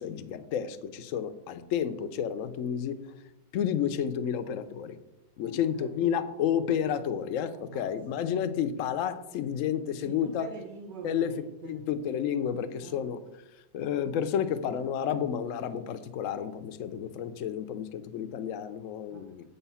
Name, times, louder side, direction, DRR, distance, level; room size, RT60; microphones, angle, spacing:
voice 1, 0.0-3.0 3.5-5.0 5.4-10.5 11.0-11.3 11.7-13.2 13.7-19.5, left 8 dB, 65° left, 10 dB, 0.8 m, -31 dB
voice 2, 5.4-5.9 7.5-8.2 10.0-11.8 12.8-13.1 19.1-19.5, right 4 dB, 65° right, 1 dB, 1.5 m, -45 dB
7.9 x 7.0 x 5.6 m, 0.95 s
omnidirectional pair, 2.0 m